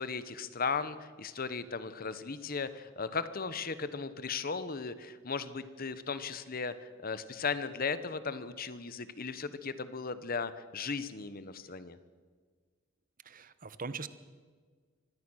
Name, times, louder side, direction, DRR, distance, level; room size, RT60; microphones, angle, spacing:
voice 1, 0.0-12.0, left 5 dB, 45° left, 13 dB, 1.1 m, -36 dB
voice 2, 13.2-14.1, right 4 dB, 40° right, 14 dB, 1.0 m, -41 dB
24.5 x 17.5 x 6.4 m, 1.5 s
head